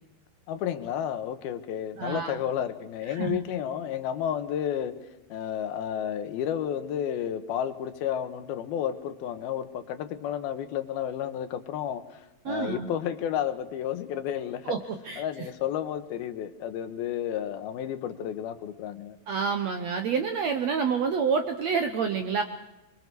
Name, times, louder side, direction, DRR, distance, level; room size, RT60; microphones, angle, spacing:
voice 1, 0.5-4.9 5.3-14.8 15.2-19.2, left 10 dB, 75° left, 10 dB, 3.0 m, -31 dB
voice 2, 2.0-2.4 3.1-3.4 12.4-12.9 14.7-14.8 15.0-15.2 19.3-22.4, right 6 dB, 70° right, 6 dB, 1.6 m, -28 dB
25.0 x 23.5 x 4.8 m, 0.99 s
omnidirectional pair, 4.5 m